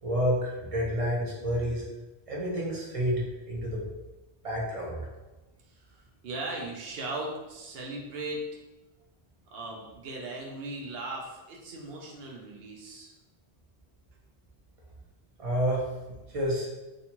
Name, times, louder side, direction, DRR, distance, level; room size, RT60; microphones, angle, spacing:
voice 1, 0.0-1.8 2.3-3.8 4.4-5.0 15.4-15.9 16.3-16.7, equal, 40° right, -3 dB, 0.6 m, -29 dB
voice 2, 5.7-8.4 9.5-13.1, right 2 dB, 70° right, -1 dB, 0.8 m, -38 dB
2.6 x 2.3 x 2.8 m, 1.1 s
omnidirectional pair, 1.1 m